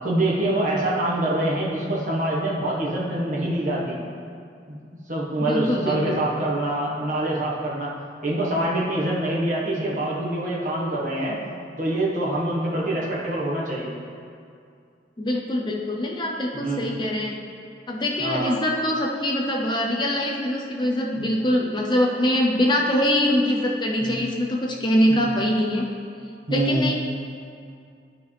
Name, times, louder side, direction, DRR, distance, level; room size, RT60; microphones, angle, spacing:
voice 1, 0.0-4.0 4.7-4.8 5.1-7.9 8.2-11.4 11.8-13.9 16.5-16.8 18.2-18.5 21.2-21.3 24.0-24.2 25.1-25.3 26.5-26.8, right 1 dB, 45° right, -5 dB, 1.4 m, -25 dB
voice 2, 5.4-6.2 15.2-17.4 17.9-25.8 26.5-26.9, left 1 dB, 25° left, -1 dB, 0.6 m, -23 dB
12.0 x 4.8 x 3.3 m, 2.4 s
head